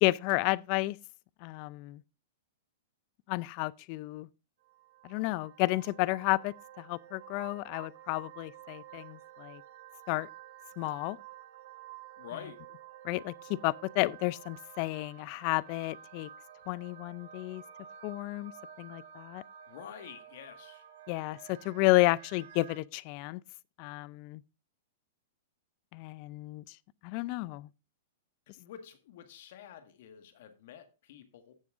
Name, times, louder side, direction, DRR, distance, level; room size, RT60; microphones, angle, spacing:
voice 1, 0.0-1.0 1.4-2.0 3.3-4.3 5.0-9.6 10.1-10.3 10.8-11.2 13.0-16.3 16.7-17.6 18.0-18.5 18.8-19.4 21.1-23.4 23.8-24.4 25.9-26.6 27.0-27.7, left 21 dB, 45° left, 0.4 m, -31 dB
sound 1, 4.6-22.8, right 10 dB, 65° right, 2.1 m, -51 dB
voice 2, 12.2-12.6 19.7-20.8 28.6-31.5, left 9 dB, 65° left, 1.6 m, -48 dB
16.0 x 7.1 x 2.5 m
hypercardioid pair, 125°, 0 cm